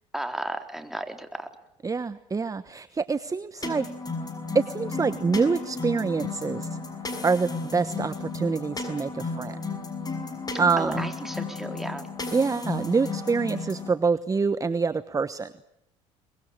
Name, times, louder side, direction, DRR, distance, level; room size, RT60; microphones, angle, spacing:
voice 1, 0.1-1.5 10.8-12.1, right 1 dB, ahead, 6 dB, 4.0 m, -34 dB
voice 2, 1.8-3.9 4.5-6.7 7.2-9.6 10.6-11.0 12.3-15.5, right 4 dB, 25° right, 14 dB, 1.1 m, -26 dB
sound 1, 3.6-13.9, left 3 dB, 25° left, 6.2 m, -34 dB
24.0 x 21.5 x 8.8 m, 0.80 s
supercardioid pair, 75°, 14 cm